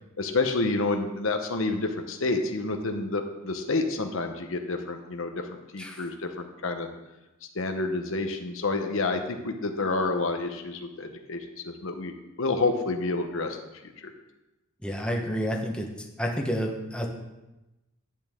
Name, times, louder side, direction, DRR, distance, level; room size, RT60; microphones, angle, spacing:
voice 1, 0.2-6.9 7.5-12.1 12.4-13.6 13.8-14.1, left 3 dB, 65° left, 5 dB, 0.9 m, -29 dB
voice 2, 14.8-15.9 16.2-17.1, equal, 5° left, 0 dB, 1.1 m, -29 dB
10.5 x 8.5 x 3.7 m, 1.0 s
head